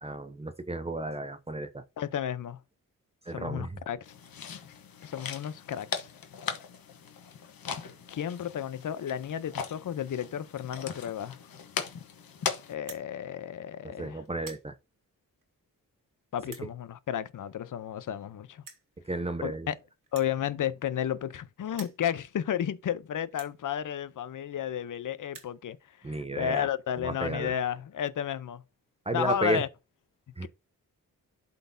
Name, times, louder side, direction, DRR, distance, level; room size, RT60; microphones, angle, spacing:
voice 1, 0.0-1.8 3.3-3.8 13.8-14.7 19.1-19.7 26.0-26.7 27.0-27.5 29.1-29.6 30.4-30.5, right 2 dB, 20° right, 0.5 m, -33 dB
voice 2, 2.0-2.6 3.3-4.0 5.0-6.1 8.1-11.4 12.7-14.2 16.3-18.6 19.4-19.8 20.1-25.8 26.1-28.6 29.1-29.7 30.4-30.5, left 10 dB, 65° left, 0.6 m, -32 dB
sound 1, 4.0-12.7, left 7 dB, 85° left, 1.0 m, -39 dB
sound 2, 12.8-13.1 13.7-13.9 14.3-14.7 15.4-15.5 16.4-16.7 17.7-17.8 18.0-18.1 18.6-18.9 20.0-21.4 21.7-22.0 22.7-22.8 23.3-23.6 24.5-24.6 24.8-24.9 25.1-25.6, right 5 dB, 70° right, 1.8 m, -48 dB
11.5 x 4.1 x 2.6 m
wide cardioid pair, 115°, 34 cm